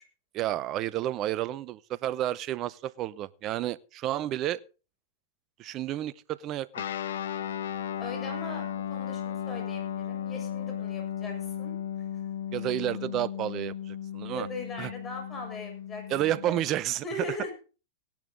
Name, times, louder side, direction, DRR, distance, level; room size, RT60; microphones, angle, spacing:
voice 1, 0.3-4.6 5.6-6.8 12.5-14.5 14.8-14.9 16.1-17.0, right 13 dB, 40° right, 0.8 m, -31 dB
Guitar, 6.7-16.6, left 9 dB, 70° left, 1.1 m, -35 dB
voice 2, 8.0-12.1 14.3-16.7 17.0-17.5, left 2 dB, 20° left, 7.1 m, -40 dB
17.5 x 10.5 x 3.9 m
hypercardioid pair, 105°, 0 cm